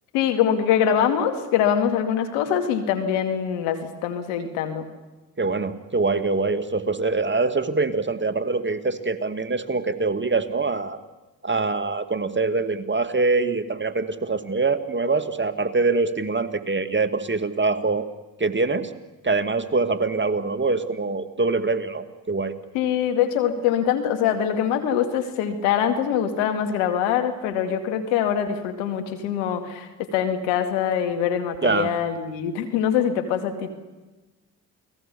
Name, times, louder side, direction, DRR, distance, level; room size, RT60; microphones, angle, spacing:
voice 1, 0.1-4.9 22.7-33.7, left 9 dB, 80° left, 6 dB, 2.4 m, -23 dB
voice 2, 5.4-11.0 11.4-18.1 18.4-18.9 19.2-22.5 31.6-31.9, right 3 dB, 25° right, 9 dB, 2.2 m, -24 dB
29.5 x 19.5 x 7.1 m, 1.1 s
hypercardioid pair, 45°, 44 cm